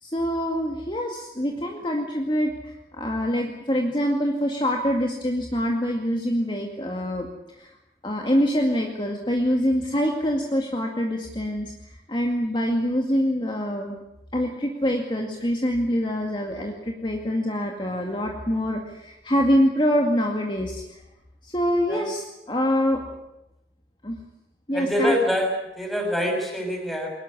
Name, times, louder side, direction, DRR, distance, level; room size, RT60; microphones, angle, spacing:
voice 1, 0.0-7.3 7.6-7.7 8.0-14.0 14.3-21.0 21.4-23.0 24.0-24.2 24.7-25.2, equal, 25° left, 1 dB, 2.2 m, -25 dB
voice 2, 24.7-25.5 25.7-27.1, equal, ahead, 1 dB, 6.5 m, -25 dB
22.5 x 19.5 x 9.8 m, 0.92 s
head